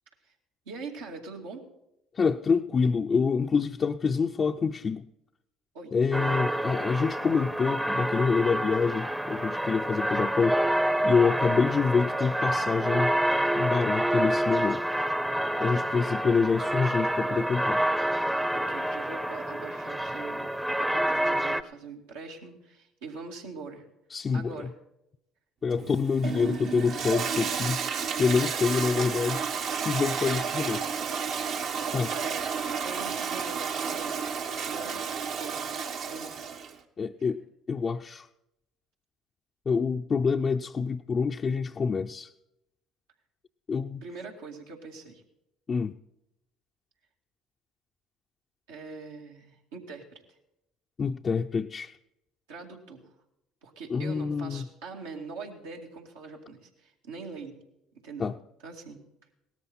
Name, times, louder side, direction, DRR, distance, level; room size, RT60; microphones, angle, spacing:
voice 1, 0.7-1.6 5.7-5.9 11.4-11.7 18.5-23.9 24.3-24.7 28.4-28.7 30.5-30.6 31.5-32.4 32.8-35.0 35.4-35.7 36.1-36.5 37.2-37.4 44.0-45.2 48.7-50.4 52.5-53.1 53.6-57.6 58.0-58.3 58.6-59.0, right 4 dB, 85° right, -1 dB, 2.4 m, -43 dB
voice 2, 2.1-5.1 5.9-10.6 11.0-13.1 13.5-14.8 15.6-17.8 24.1-24.7 25.6-27.9 28.2-29.5 29.8-30.8 31.9-32.1 37.0-38.3 39.7-42.3 43.7-44.0 45.7-46.0 51.0-51.9 53.9-54.7 58.2-58.3, left 5 dB, 35° left, 3 dB, 0.5 m, -26 dB
sound 1, 6.1-21.6, right 1 dB, 5° right, 0.7 m, -28 dB
Toilet flush, 25.7-36.8, right 6 dB, 60° right, 1.2 m, -32 dB
17.5 x 13.0 x 4.3 m, 0.86 s
hypercardioid pair, 70°, 0 cm